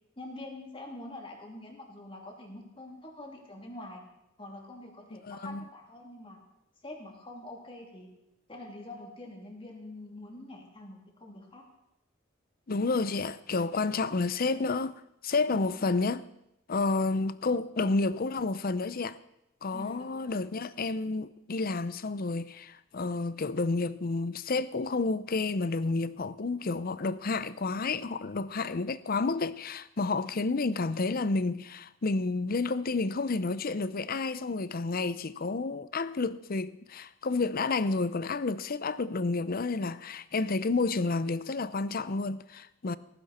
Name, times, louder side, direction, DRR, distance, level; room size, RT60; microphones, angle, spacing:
voice 1, 0.2-4.0 4.4-6.4 6.8-8.1 8.5-11.6 19.7-20.3, left 1 dB, 25° left, 3.0 m, -45 dB
voice 2, 5.1-5.6 12.7-16.2 16.7-19.2 19.6-43.0, left 3 dB, 50° left, 0.6 m, -30 dB
17.5 x 15.0 x 4.3 m
head